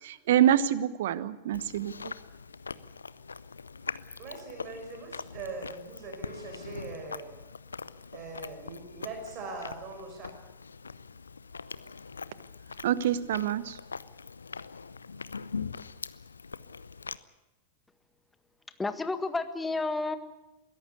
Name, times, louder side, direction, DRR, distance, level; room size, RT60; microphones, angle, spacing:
voice 1, 0.0-2.1 12.8-13.8, right 11 dB, 55° right, 17 dB, 1.1 m, -26 dB
Chewing mastication, 1.5-17.2, left 5 dB, 75° left, 0.7 m, -42 dB
voice 2, 4.2-7.3 8.1-10.3, right 3 dB, 35° right, 4 dB, 5.7 m, -41 dB
voice 3, 18.7-20.2, left 3 dB, 10° left, 11 dB, 1.7 m, -31 dB
22.0 x 17.0 x 8.3 m, 1.1 s
figure-of-eight pair, 90°, 0 cm